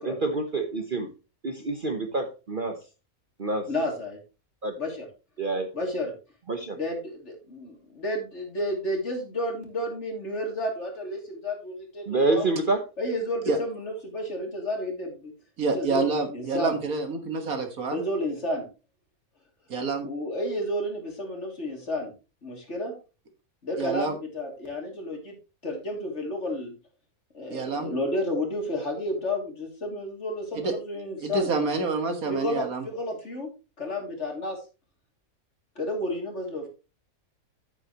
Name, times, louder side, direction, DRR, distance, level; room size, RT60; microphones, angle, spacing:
voice 1, 0.0-1.1 1.4-2.8 3.4-3.7 4.6-4.7 5.4-5.7 6.5-6.8 12.1-12.8, right 3 dB, 40° right, 6 dB, 1.1 m, -27 dB
voice 2, 3.7-4.2 4.8-5.1 5.7-6.1 6.7-12.5 13.0-15.3 15.7-16.8 17.9-18.7 20.0-22.1 22.4-22.9 23.6-25.4 25.6-26.7 27.3-31.5 32.3-33.5 33.8-34.6 35.8-36.7, left 1 dB, 50° left, 1 dB, 3.0 m, -31 dB
voice 3, 15.6-18.0 19.7-20.1 23.8-24.1 27.5-27.9 30.5-30.7 31.2-32.8, right 4 dB, 75° right, 6 dB, 2.0 m, -28 dB
9.7 x 8.9 x 3.0 m, 0.30 s
omnidirectional pair, 1.5 m